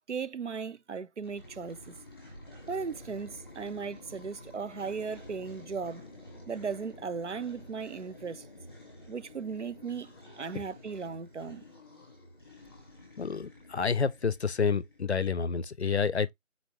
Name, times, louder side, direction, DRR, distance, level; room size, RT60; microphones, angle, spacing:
voice 1, 0.1-1.9 2.7-6.0 6.5-8.5 9.1-11.6, right 5 dB, 65° right, 0.6 m, -37 dB
sound 1, 1.2-15.1, left 1 dB, 20° left, 1.2 m, -50 dB
voice 2, 13.2-16.3, left 5 dB, 60° left, 0.5 m, -29 dB
4.1 x 3.3 x 2.8 m
figure-of-eight pair, 170°, 37 cm